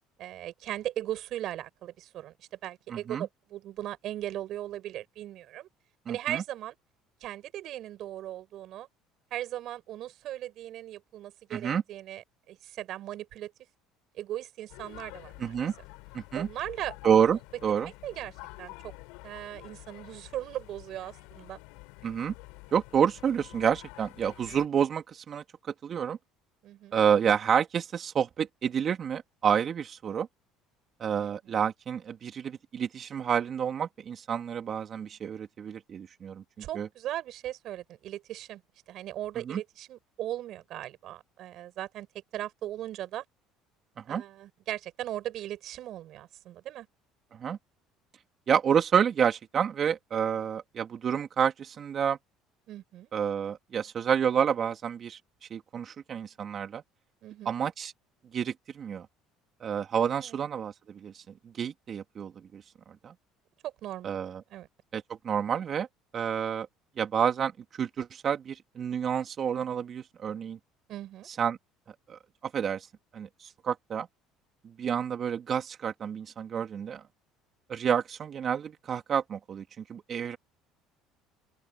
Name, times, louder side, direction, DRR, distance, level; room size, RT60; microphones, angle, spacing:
voice 1, 0.2-5.7 6.1-6.7 7.2-8.9 9.3-13.5 14.1-15.5 16.3-16.9 18.0-18.9 19.2-21.6 24.4-24.6 26.6-27.0 31.2-31.6 36.6-38.6 38.9-42.1 42.3-43.2 44.1-46.9 52.7-53.1 57.2-57.5 60.2-60.4 63.6-64.2 64.5-64.7 70.9-71.3, right 13 dB, 60° right, 7.3 m, -38 dB
voice 2, 2.9-3.3 6.1-6.4 11.5-11.8 15.4-15.7 16.1-16.5 17.0-17.9 22.0-22.3 22.7-25.4 25.8-26.2 26.9-30.3 31.0-36.4 36.7-36.9 39.5-39.6 44.1-44.2 47.3-47.6 48.5-52.2 53.1-55.2 55.5-56.8 57.5-57.9 58.3-59.1 59.6-61.2 61.5-62.6 63.0-63.1 64.0-64.4 64.9-65.9 66.1-66.7 67.0-67.5 67.8-70.6 71.4-71.6 72.1-72.9 73.1-73.3 73.6-74.1 74.6-77.0 77.7-80.4, right 8 dB, 45° right, 3.5 m, -29 dB
sound 1, 14.7-24.7, left 27 dB, 80° left, 4.7 m, -48 dB
open air
supercardioid pair, 90°, 0 cm